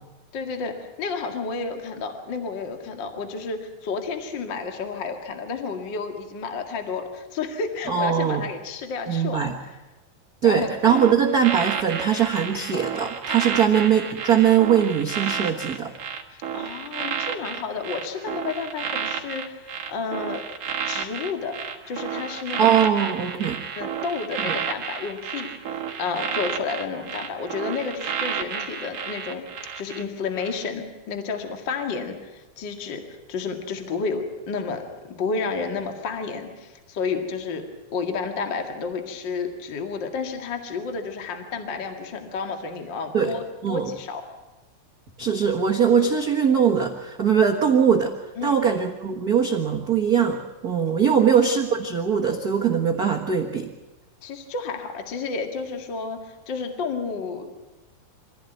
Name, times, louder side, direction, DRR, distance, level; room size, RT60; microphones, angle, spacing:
voice 1, 0.3-9.8 10.4-10.7 13.5-13.6 16.5-20.4 20.8-21.6 21.9-22.7 23.8-29.4 29.8-33.0 33.3-44.2 48.4-48.6 54.2-57.5, left 5 dB, 35° left, 5 dB, 2.2 m, -31 dB
voice 2, 7.9-8.4 9.1-9.5 10.4-15.9 22.6-23.6 24.4-24.5 43.1-43.3 43.6-43.9 45.2-48.1 48.4-53.7, right 7 dB, 80° right, 1 dB, 0.8 m, -21 dB
sound 1, 10.9-30.0 30.4-30.6, right 8 dB, 50° right, 2.3 m, -31 dB
25.0 x 15.5 x 9.2 m, 1.1 s
omnidirectional pair, 4.1 m